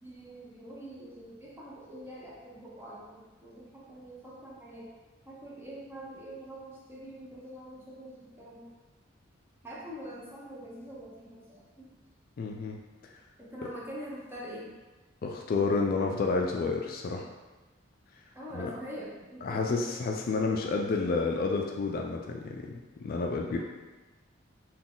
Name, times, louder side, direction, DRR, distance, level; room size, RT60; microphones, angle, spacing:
voice 1, 0.0-4.9 5.3-8.7 9.6-11.9 13.4-14.7 18.3-19.6 23.5-23.6, equal, 10° right, -5 dB, 0.8 m, -44 dB
voice 2, 12.4-12.8 15.2-17.2 18.5-18.7 19.4-23.6, left 4 dB, 45° left, 1 dB, 0.3 m, -30 dB
3.9 x 2.3 x 3.8 m, 1.2 s
head